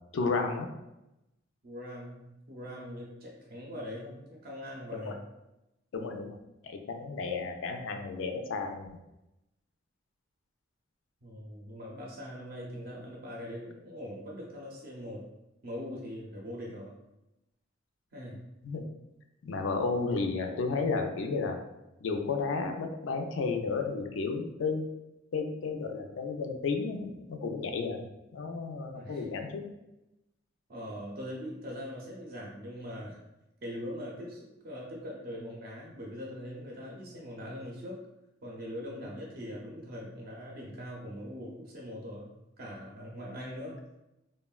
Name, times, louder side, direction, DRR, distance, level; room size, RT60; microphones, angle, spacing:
voice 1, 0.1-0.7 4.9-5.1 5.9-6.4 6.6-8.9 18.6-18.8 19.4-21.6 22.0-24.9 25.3-28.0 28.3-29.6, left 4 dB, 80° left, 5 dB, 0.4 m, -32 dB
voice 2, 1.6-5.2 11.2-15.2 15.6-16.9 18.1-18.4 28.9-29.2 30.7-33.2 33.6-38.0 38.4-42.3 42.6-43.8, equal, 50° right, -2 dB, 0.5 m, -41 dB
3.4 x 2.1 x 2.3 m, 0.93 s
head